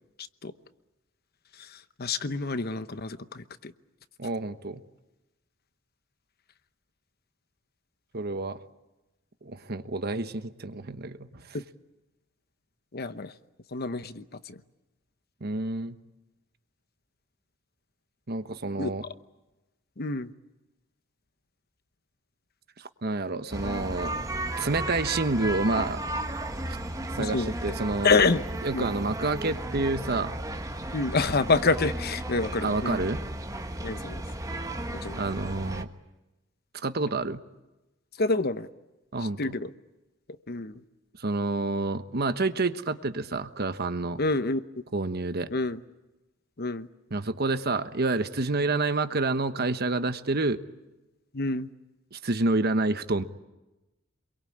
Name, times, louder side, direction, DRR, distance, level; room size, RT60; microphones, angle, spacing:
voice 1, 1.5-3.7 11.5-11.6 12.9-13.3 13.7-14.6 18.8-18.9 20.0-20.3 27.2-27.5 28.0-28.5 28.7-28.9 30.9-33.0 33.8-34.2 34.9-35.2 38.2-38.7 39.2-39.7 40.5-40.8 44.2-44.6 45.5-45.8 46.6-46.9 51.3-51.7, left 3 dB, 50° left, 12 dB, 1.0 m, -27 dB
voice 2, 4.2-4.8 8.1-8.6 9.4-11.6 15.4-15.9 18.3-19.0 22.8-24.1 24.6-26.0 27.2-28.1 28.6-30.3 32.6-33.2 35.2-35.9 36.8-37.4 39.1-39.4 41.2-44.2 44.9-45.5 47.1-50.6 52.1-53.2, right 3 dB, 50° right, 10 dB, 1.2 m, -28 dB
sound 1, 23.5-35.8, right 1 dB, 15° right, 1.4 m, -34 dB
27.0 x 23.0 x 8.8 m, 1.0 s
head